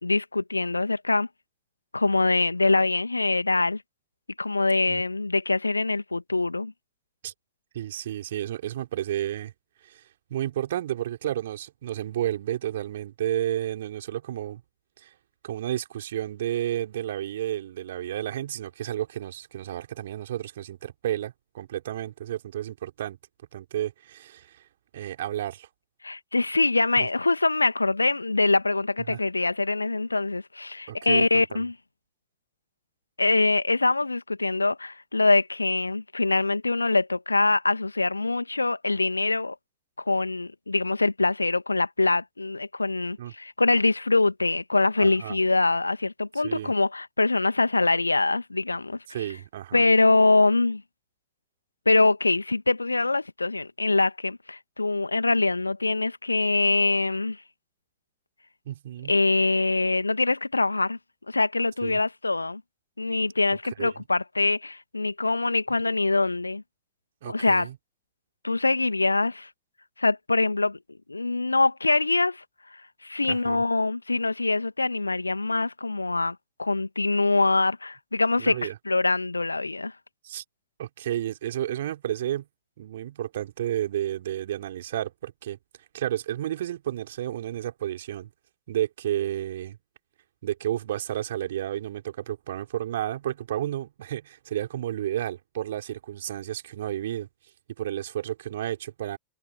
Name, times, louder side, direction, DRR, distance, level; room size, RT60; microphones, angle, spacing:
voice 1, 0.0-1.3 1.9-3.8 4.4-6.7 26.0-31.7 33.2-39.6 40.1-49.0 49.7-50.8 51.9-57.4 59.1-61.0 61.3-62.6 63.0-66.6 67.2-67.7 68.4-69.5 70.0-70.8 71.1-72.4 73.0-79.9, left 3 dB, 80° left, 1.9 m, -24 dB
voice 2, 7.7-9.5 9.8-10.0 10.3-14.6 15.0-15.1 15.4-23.2 23.5-24.6 24.9-25.7 27.0-27.1 29.1-29.2 30.9-31.7 43.2-43.3 45.0-45.4 46.4-46.7 49.1-49.9 58.6-59.2 61.8-62.0 63.8-63.9 67.2-67.8 73.3-73.6 78.4-78.8 80.2-80.4 80.8-82.5 82.8-85.6 85.9-88.3 88.7-89.8 90.4-97.3 97.8-99.2, right 12 dB, 60° right, 4.6 m, -31 dB
figure-of-eight pair, 90°, 0 cm